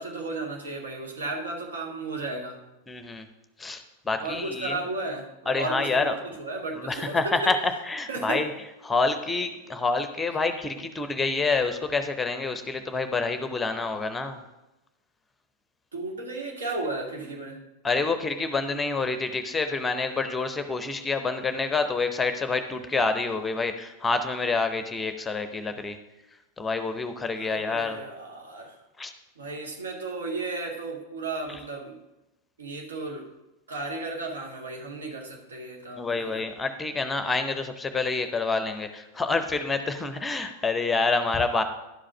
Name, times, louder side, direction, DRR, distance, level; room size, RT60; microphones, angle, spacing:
voice 1, 0.0-2.6 4.2-7.5 8.1-8.4 15.9-17.6 27.4-28.8 29.4-32.0 32.6-33.3 33.7-36.4, right 3 dB, 65° right, 1 dB, 1.5 m, -34 dB
voice 2, 2.9-3.3 3.6-4.9 5.5-6.2 6.8-8.5 8.8-14.4 17.8-26.0 26.6-28.0 29.0-29.1 31.5-31.6 36.0-41.6, left 3 dB, 10° left, 9 dB, 0.7 m, -27 dB
11.0 x 5.0 x 6.0 m, 0.98 s
figure-of-eight pair, 90°, 0 cm